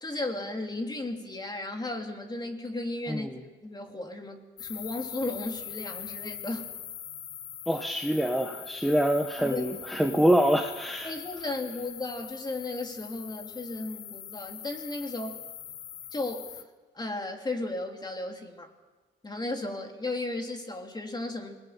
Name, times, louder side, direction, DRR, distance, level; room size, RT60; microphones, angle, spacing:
voice 1, 0.0-3.3 3.6-6.7 9.4-9.6 11.0-15.4 16.1-16.6 16.9-18.7 19.2-21.6, left 2 dB, 20° left, 4 dB, 3.1 m, -35 dB
voice 2, 3.1-3.4 7.7-11.1, equal, ahead, 4 dB, 1.5 m, -25 dB
sound 1, 4.6-16.6, left 10 dB, 70° left, 1.3 m, -42 dB
27.0 x 20.5 x 5.9 m, 1.3 s
cardioid pair, 90°, 20 cm